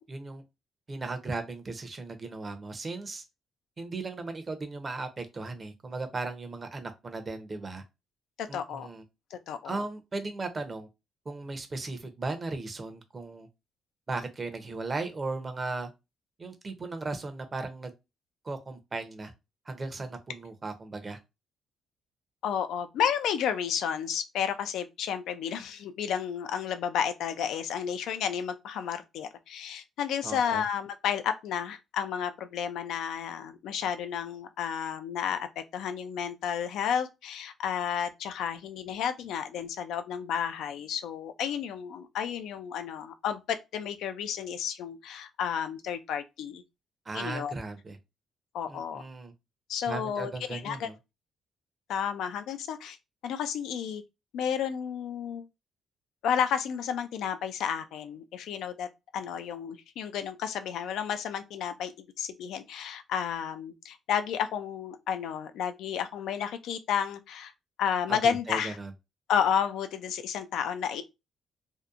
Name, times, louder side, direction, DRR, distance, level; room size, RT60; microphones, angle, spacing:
voice 1, 0.1-0.4 0.9-3.2 3.8-7.8 8.5-9.0 9.6-10.9 11.2-13.5 14.1-15.9 16.4-17.9 18.4-19.3 19.7-21.2 30.2-30.6 47.1-48.0 48.7-49.3 49.9-50.9 68.1-68.9, right 3 dB, 30° right, 0.6 m, -36 dB
voice 2, 8.4-8.9 9.3-9.8 22.4-46.6 47.1-47.5 48.5-49.0 49.7-50.9 51.9-53.0 53.2-54.0 54.3-55.5 56.2-58.9 59.1-67.5 67.8-68.8 69.3-71.0, left 8 dB, 80° left, 0.3 m, -32 dB
2.7 x 2.1 x 2.4 m
cardioid pair, 90°, 0 cm